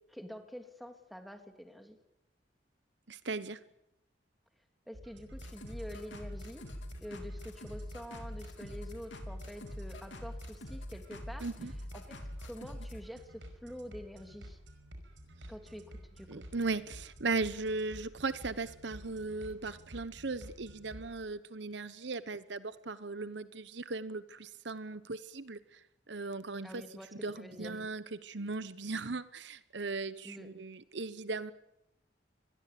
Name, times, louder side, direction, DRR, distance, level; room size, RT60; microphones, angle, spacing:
voice 1, 0.1-2.0 4.9-6.6 7.0-11.5 11.9-14.6 15.5-16.4 26.6-27.1 27.4-27.7 30.2-30.5, equal, ahead, 5 dB, 2.7 m, -47 dB
voice 2, 3.1-3.6 11.4-11.7 16.3-31.5, right 3 dB, 70° right, 14 dB, 1.0 m, -38 dB
sound 1, 4.9-21.2, equal, 85° right, 5.3 m, -51 dB
sound 2, 5.3-13.0, left 1 dB, 75° left, 3.5 m, -44 dB
26.0 x 21.0 x 8.5 m, 0.80 s
head